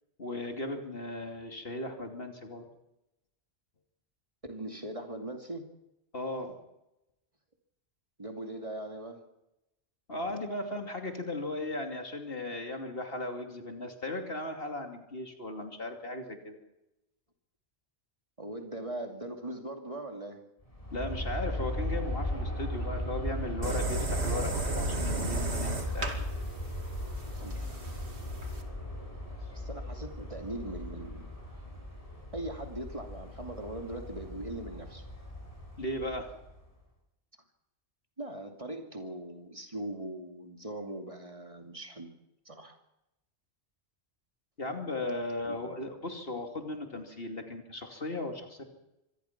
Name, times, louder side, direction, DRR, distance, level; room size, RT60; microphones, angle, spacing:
voice 1, 0.2-2.6 6.1-6.5 10.1-16.6 20.9-26.1 35.8-36.3 44.6-48.6, left 1 dB, 60° left, 4 dB, 3.0 m, -37 dB
voice 2, 4.4-5.7 8.2-9.2 18.4-20.4 27.4-28.0 29.5-31.2 32.3-35.0 38.2-42.1 42.5-42.8 45.4-45.8, right 1 dB, 30° right, 4 dB, 2.6 m, -40 dB
Aircraft, 20.6-36.7, left 1 dB, 30° left, 6.5 m, -37 dB
sound 1, 23.6-28.6, right 2 dB, 75° right, 2.7 m, -34 dB
25.0 x 19.0 x 6.0 m, 0.90 s
omnidirectional pair, 1.1 m